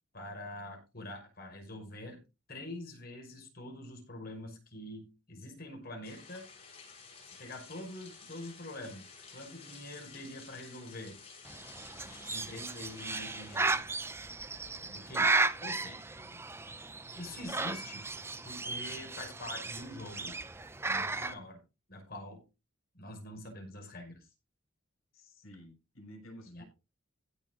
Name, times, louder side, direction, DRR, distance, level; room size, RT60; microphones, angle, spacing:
voice 1, 0.1-2.2 2.5-6.5 7.2-11.2 12.0-13.9 14.8-16.0 17.1-18.1 18.4-20.4 20.8-21.6 21.9-22.4 22.9-24.3 26.5-26.6, left 1 dB, 45° left, 2 dB, 5.7 m, -45 dB
sound 1, 6.0-13.8, left 5 dB, 30° left, 6.4 m, -53 dB
Bird, 11.5-21.3, right 3 dB, 10° right, 0.6 m, -35 dB
voice 2, 25.1-26.6, equal, 85° left, 4 dB, 6.0 m, -52 dB
15.5 x 6.6 x 3.8 m, 0.28 s
head